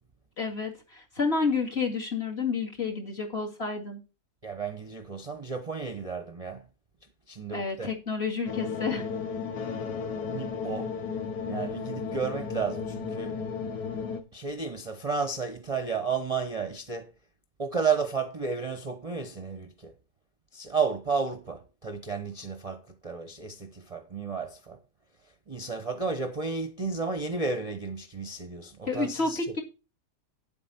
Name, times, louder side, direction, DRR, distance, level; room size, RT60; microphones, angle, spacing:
voice 1, 0.4-4.0 7.5-9.1 28.9-29.6, left 4 dB, 40° left, 2.4 m, -30 dB
voice 2, 4.4-6.6 7.3-7.9 10.3-10.9 11.5-13.3 14.3-17.1 17.6-19.9 20.5-24.8 25.5-29.4, right 5 dB, 25° right, 0.8 m, -32 dB
sound 1, 8.5-14.2, left 5 dB, 75° left, 2.0 m, -34 dB
9.6 x 7.9 x 4.3 m
omnidirectional pair, 1.7 m